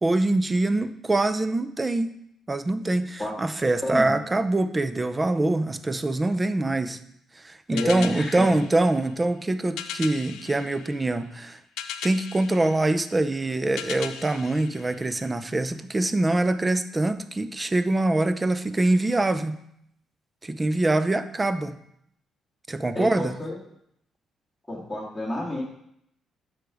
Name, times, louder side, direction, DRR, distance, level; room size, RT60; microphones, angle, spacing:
voice 1, 0.0-2.1 2.5-7.0 7.4-11.6 12.0-19.6 20.4-21.8 22.7-23.4, right 2 dB, 20° right, 11 dB, 0.5 m, -24 dB
voice 2, 7.7-8.4 22.9-23.5 24.7-25.6, left 1 dB, 5° left, -6 dB, 1.9 m, -29 dB
sound 1, 7.8-15.6, left 9 dB, 90° left, 0.4 m, -39 dB
6.6 x 5.0 x 4.9 m, 0.74 s
cardioid pair, 90°, 0 cm